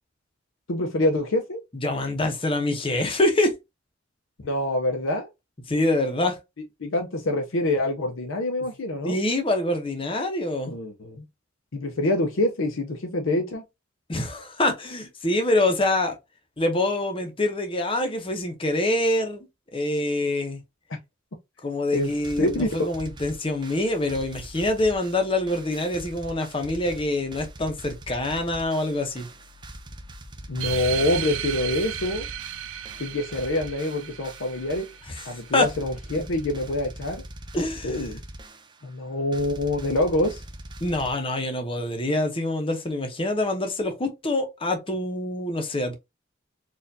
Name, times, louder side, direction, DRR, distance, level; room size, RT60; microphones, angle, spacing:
voice 1, 0.7-1.6 4.4-5.3 6.8-9.2 10.7-11.2 11.7-13.6 21.9-22.1 22.4-22.7 30.5-32.3 33.0-34.9 35.2-37.2 37.8-38.2 38.8-40.4, left 1 dB, 75° left, 0.7 m, -26 dB
voice 2, 1.7-3.5 5.7-6.4 9.0-10.7 14.1-16.2 16.6-19.5 19.7-20.6 21.6-29.3 35.1-35.2 35.5-35.7 37.5-37.9 40.8-45.9, left 1 dB, 25° left, 0.8 m, -25 dB
sound 1, 21.9-41.1, right 1 dB, 25° right, 0.5 m, -43 dB
sound 2, 30.6-35.6, right 9 dB, 80° right, 0.4 m, -34 dB
4.3 x 2.5 x 2.6 m
head